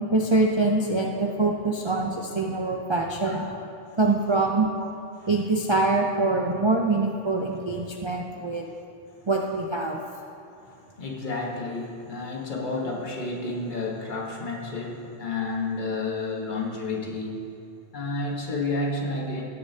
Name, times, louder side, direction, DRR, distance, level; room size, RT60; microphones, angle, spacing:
voice 1, 0.0-3.4 4.0-4.7 5.3-8.7 9.3-10.0, right 3 dB, 40° right, -1 dB, 0.4 m, -24 dB
voice 2, 3.2-3.6 5.2-5.3 8.6-8.7 10.7-17.5 17.9-19.4, left 3 dB, 40° left, -1 dB, 1.3 m, -31 dB
17.5 x 6.6 x 2.8 m, 2.5 s
omnidirectional pair, 1.2 m